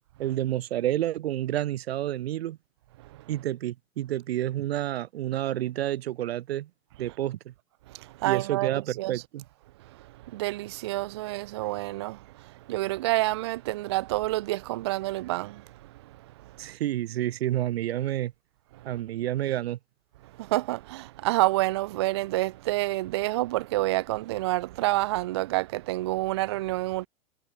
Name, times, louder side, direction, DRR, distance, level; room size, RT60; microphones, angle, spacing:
voice 1, 0.2-2.6 3.3-6.7 7.0-7.5 8.2-9.4 16.6-18.3 18.8-19.8, right 13 dB, 50° right, 1.1 m, -29 dB
voice 2, 8.2-9.1 10.3-12.2 12.7-15.6 20.4-27.1, right 18 dB, 20° right, 0.4 m, -28 dB
figure-of-eight pair, 110°, 40 cm